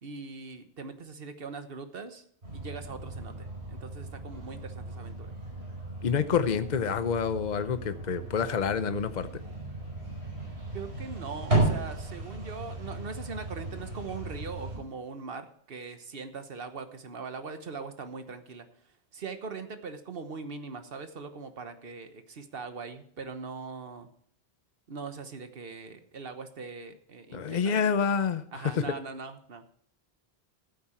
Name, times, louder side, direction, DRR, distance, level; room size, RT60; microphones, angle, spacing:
voice 1, 0.0-2.3 2.5-5.3 10.7-24.1 24.9-27.8 28.5-29.6, right 4 dB, 65° right, 8 dB, 1.3 m, -41 dB
sound 1, 2.4-14.8, right 2 dB, 85° right, 5.2 m, -35 dB
voice 2, 6.0-9.3 27.3-28.4, left 6 dB, 50° left, 11 dB, 0.9 m, -27 dB
15.0 x 8.7 x 4.4 m, 0.62 s
omnidirectional pair, 1.1 m